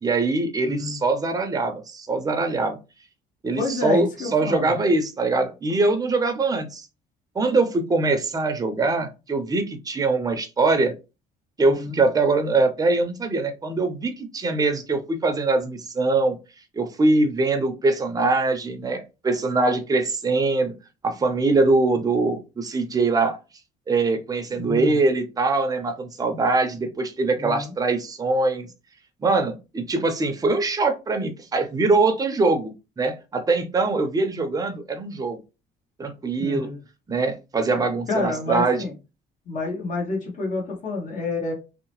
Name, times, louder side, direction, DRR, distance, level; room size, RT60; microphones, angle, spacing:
voice 1, 0.0-2.8 3.4-4.1 4.3-6.9 7.3-10.9 11.6-16.4 16.7-20.7 21.0-23.4 23.9-28.7 29.2-35.4 36.0-36.7 37.1-38.9, right 3 dB, 20° right, 6 dB, 0.6 m, -23 dB
voice 2, 0.6-1.0 3.6-4.7 11.6-12.0 24.6-24.9 27.4-27.7 36.4-36.8 38.1-38.9 39.5-41.5, left 3 dB, 50° left, -1 dB, 1.1 m, -28 dB
2.8 x 2.0 x 3.0 m, 0.29 s
cardioid pair, 110°, 17 cm